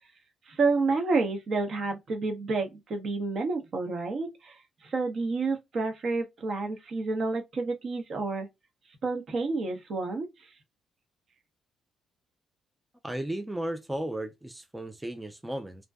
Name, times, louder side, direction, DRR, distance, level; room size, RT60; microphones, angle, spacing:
voice 1, 0.5-4.6 4.8-8.5 9.0-10.3, right 3 dB, 55° right, 0.8 m, -29 dB
voice 2, 13.0-15.9, right 1 dB, 10° right, 0.4 m, -35 dB
2.5 x 2.1 x 2.3 m
cardioid pair, 90°, 0 cm